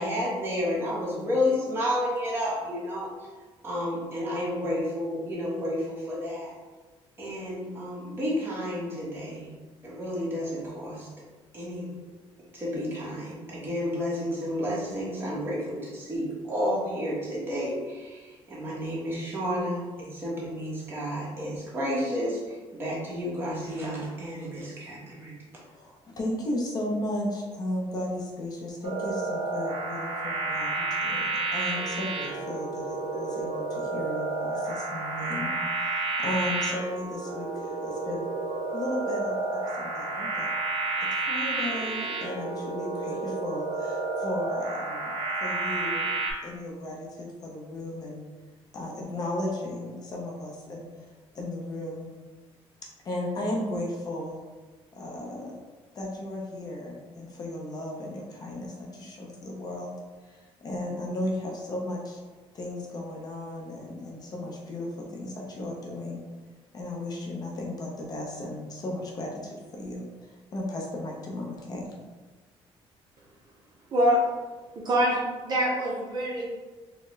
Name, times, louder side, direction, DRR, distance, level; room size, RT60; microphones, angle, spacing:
voice 1, 0.0-3.1 3.6-6.5 7.2-9.5 9.8-11.1 11.5-11.9 12.5-19.8 20.1-25.3, left 1 dB, 20° right, -6 dB, 1.2 m, -31 dB
voice 2, 25.6-38.3 38.7-40.5 41.1-45.1 45.4-46.1 46.4-48.3 48.7-51.1 51.3-52.1 53.0-54.4 55.0-55.6 55.9-59.9 60.2-62.2 62.5-66.2 66.7-71.9, left 1 dB, 40° left, -1 dB, 0.6 m, -35 dB
sound 1, 28.8-46.3, right 3 dB, 80° right, 0.8 m, -31 dB
voice 3, 73.9-74.2 74.8-76.5, equal, 40° right, -3 dB, 0.7 m, -24 dB
4.4 x 2.2 x 3.1 m, 1.3 s
cardioid pair, 155°, 11 cm